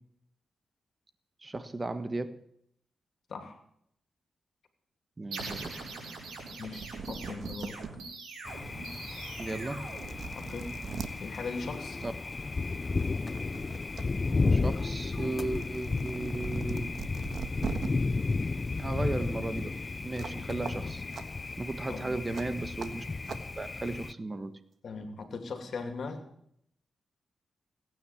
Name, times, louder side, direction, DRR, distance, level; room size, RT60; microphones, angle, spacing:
voice 1, 1.4-2.4 5.2-5.9 9.4-9.9 12.0-12.1 14.5-17.0 18.8-21.0 21.6-23.0 23.6-24.6, right 2 dB, 30° right, 11 dB, 1.3 m, -35 dB
sound 1, 5.3-10.7, right 3 dB, 90° right, 5.6 m, -43 dB
sound 2, 6.5-6.6 6.8-7.9 8.4-8.5 9.4-9.5 9.8-11.1 12.4-12.6 13.0-14.0 14.4-17.9 20.2-20.4 20.6-20.7 21.1-21.2 22.3-22.4 22.8-22.9 23.3-23.4, right 5 dB, 65° right, 1.5 m, -40 dB
voice 2, 6.6-7.8 10.3-10.7 11.2-12.0 21.9-22.3 24.8-26.2, left 4 dB, 65° left, 6 dB, 2.7 m, -39 dB
Thunder, 8.5-24.1, left 3 dB, 40° left, 0.5 m, -33 dB
18.0 x 9.4 x 7.2 m, 0.71 s
cardioid pair, 65°, 0 cm